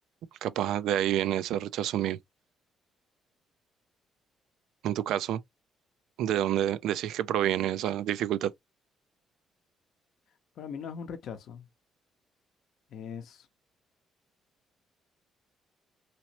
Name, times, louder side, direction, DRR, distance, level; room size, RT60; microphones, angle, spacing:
voice 1, 0.4-2.2 4.8-5.4 6.2-8.5, right 11 dB, 85° right, 0.3 m, -28 dB
voice 2, 10.6-11.7 12.9-13.5, left 7 dB, 75° left, 0.6 m, -40 dB
2.9 x 2.9 x 2.8 m
cardioid pair, 90°, 0 cm